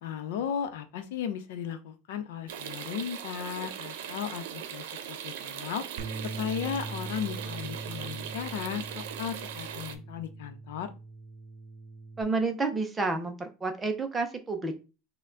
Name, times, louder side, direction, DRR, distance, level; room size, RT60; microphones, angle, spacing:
voice 1, 0.0-5.9 6.4-10.9, left 8 dB, 80° left, 9 dB, 0.7 m, -36 dB
sound 1, 2.5-9.9, right 9 dB, 85° right, 0.6 m, -40 dB
Bass guitar, 6.0-12.2, right 3 dB, 45° right, 0.8 m, -41 dB
voice 2, 12.2-14.8, right 3 dB, 10° right, 5 dB, 0.5 m, -30 dB
5.5 x 2.2 x 3.7 m, 0.31 s
supercardioid pair, 180°, 0 cm